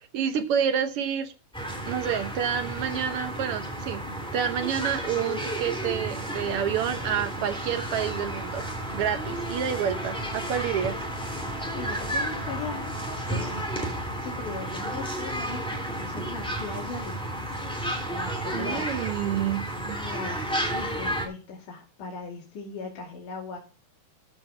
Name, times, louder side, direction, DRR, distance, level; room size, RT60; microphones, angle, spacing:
voice 1, 0.0-1.3 1.9-4.0 4.3-8.6 8.9-11.0 18.5-20.0, right 8 dB, 85° right, 8 dB, 1.2 m, -28 dB
sound 1, 1.5-21.3, right 1 dB, ahead, 2.1 m, -32 dB
Wind instrument woodwind instrument, 6.5-14.5, left 7 dB, 80° left, 3.9 m, -46 dB
voice 2, 11.7-13.6 14.2-17.5 18.1-18.9 19.2-19.4 19.9-23.6, left 5 dB, 65° left, -2 dB, 4.0 m, -39 dB
14.0 x 5.5 x 5.6 m, 0.34 s
omnidirectional pair, 3.9 m